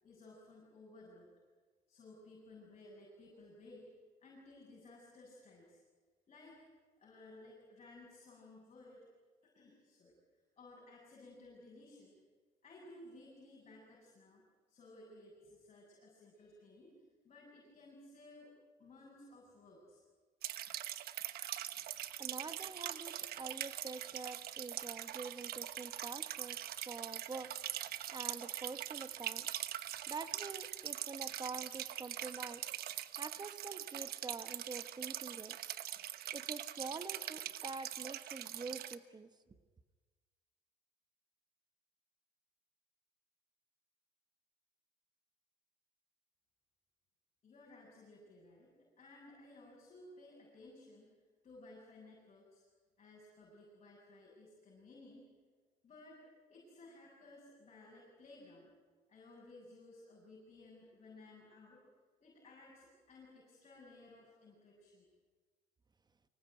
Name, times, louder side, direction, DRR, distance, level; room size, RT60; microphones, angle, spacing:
voice 1, 0.0-1.3 1.9-3.9 4.2-5.8 6.3-6.6 7.0-9.0 9.4-10.2 10.6-12.1 12.6-17.0 17.2-18.5 18.8-20.0 47.4-51.1 51.4-52.6 53.0-55.3 55.8-58.7 59.1-61.8 62.2-65.1, left 2 dB, 40° left, -4 dB, 7.9 m, -57 dB
sound 1, 20.4-38.9, right 12 dB, 65° right, 1.1 m, -43 dB
voice 2, 22.2-27.6 28.1-29.5 30.1-32.6 33.1-35.7 36.3-39.3, right 4 dB, 25° right, 11 dB, 1.2 m, -46 dB
24.5 x 20.0 x 9.5 m, 1.4 s
cardioid pair, 110°, 17 cm